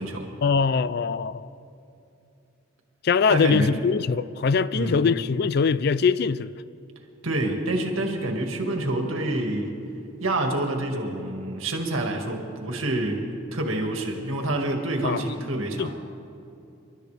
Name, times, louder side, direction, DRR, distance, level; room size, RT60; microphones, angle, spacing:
voice 1, 0.4-1.5 3.0-6.5 15.0-15.2 15.8-15.9, left 5 dB, 50° left, 0.3 m, -22 dB
voice 2, 3.3-3.7 4.7-5.1 7.2-9.7 10.2-13.2 13.5-15.9, right 1 dB, 85° right, 1.9 m, -27 dB
28.5 x 12.5 x 3.4 m
head